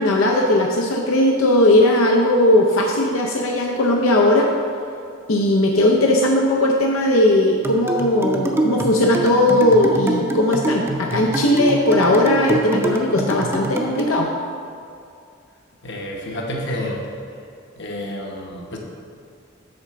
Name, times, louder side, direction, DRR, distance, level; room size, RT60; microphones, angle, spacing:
voice 1, 0.0-4.5 5.3-14.3, left 1 dB, 90° left, 0 dB, 0.7 m, -17 dB
sound 1, 7.6-14.2, right 2 dB, 10° right, 0.6 m, -25 dB
voice 2, 15.8-17.1 17.8-18.8, left 1 dB, 60° left, -1 dB, 1.0 m, -29 dB
7.9 x 3.9 x 6.6 m, 2.4 s
head